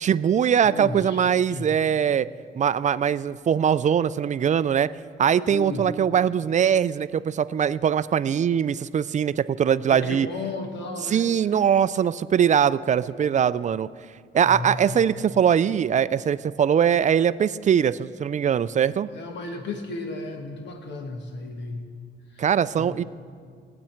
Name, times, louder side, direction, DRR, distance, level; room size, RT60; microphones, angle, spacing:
voice 1, 0.0-2.3 2.6-4.9 5.2-10.3 11.1-13.9 14.3-19.1 22.4-23.0, right 8 dB, 40° right, 16 dB, 0.4 m, -22 dB
voice 2, 0.6-1.7 5.5-5.9 9.9-11.3 14.4-15.0 19.1-21.8 22.3-22.5 22.8-23.0, left 3 dB, 65° left, 4 dB, 1.3 m, -34 dB
20.5 x 8.5 x 4.5 m, 2.1 s
cardioid pair, 90°, 20 cm